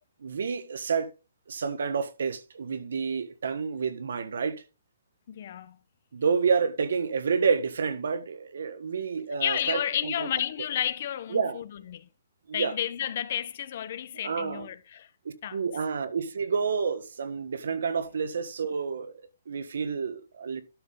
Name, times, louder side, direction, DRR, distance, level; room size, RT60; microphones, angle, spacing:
voice 1, 0.2-1.1 1.5-4.6 6.1-10.3 11.3-11.6 12.5-12.7 14.2-14.7 15.2-20.6, right 5 dB, 75° right, 1.5 m, -29 dB
voice 2, 5.3-5.8 9.4-12.1 12.5-15.1 15.4-15.7, left 10 dB, 40° left, 0.8 m, -31 dB
12.0 x 6.0 x 3.8 m
hypercardioid pair, 170°, 0 cm